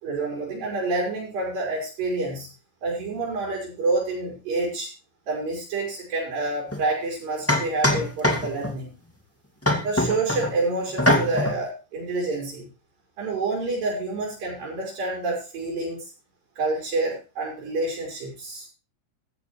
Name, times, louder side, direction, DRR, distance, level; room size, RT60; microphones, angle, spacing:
voice 1, 0.0-2.5 2.8-4.9 5.3-9.0 9.8-12.7 13.2-16.1 16.6-18.7, right 3 dB, 85° right, -2 dB, 7.2 m, -28 dB
sound 1, 6.7-6.8 7.5-8.8 9.6-10.5 11.0-11.6, left 1 dB, 5° left, 1.2 m, -23 dB
15.0 x 13.5 x 3.3 m, 0.31 s
omnidirectional pair, 3.9 m